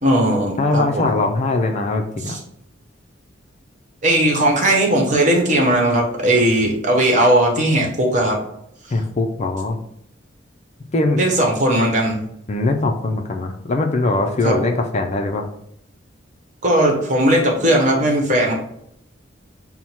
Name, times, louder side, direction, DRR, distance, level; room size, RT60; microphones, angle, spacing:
voice 1, 0.0-1.1 2.2-2.4 4.0-8.4 11.2-12.2 14.4-14.6 16.6-18.5, right 1 dB, 40° right, 0 dB, 1.0 m, -17 dB
voice 2, 0.6-2.4 8.9-9.8 10.9-11.2 12.5-15.5, left 2 dB, 35° left, 4 dB, 0.4 m, -21 dB
5.6 x 2.1 x 4.5 m, 0.73 s
head